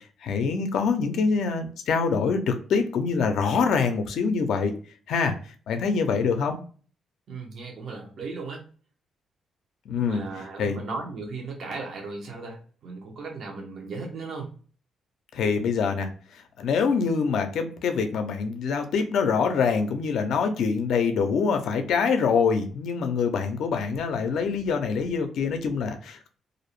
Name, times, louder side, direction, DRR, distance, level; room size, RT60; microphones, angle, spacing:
voice 1, 0.2-4.7 5.1-5.4 5.7-6.6 9.9-10.2 10.6-10.8 15.3-26.3, left 5 dB, 75° left, 6 dB, 0.4 m, -25 dB
voice 2, 7.3-8.7 9.9-14.5, right 3 dB, 60° right, 1 dB, 0.7 m, -36 dB
2.5 x 2.0 x 2.9 m, 0.41 s
cardioid pair, 95°, 0 cm